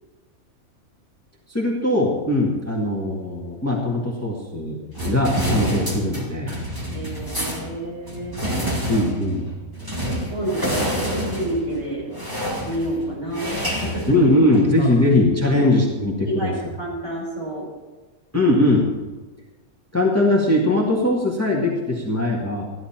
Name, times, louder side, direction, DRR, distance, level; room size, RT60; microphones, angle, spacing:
voice 1, 1.5-4.8 5.1-6.5 8.9-9.5 14.1-16.5 18.3-18.9 19.9-22.7, left 1 dB, 10° left, -2 dB, 1.8 m, -20 dB
sound 1, 4.9-14.8, equal, 15° right, 2.2 m, -28 dB
voice 2, 6.9-8.4 10.3-12.1 12.7-14.2 14.8-14.9 15.4-15.7 16.3-17.7, right 1 dB, 55° right, -4 dB, 5.4 m, -29 dB
14.5 x 11.0 x 4.4 m, 1.3 s
omnidirectional pair, 1.5 m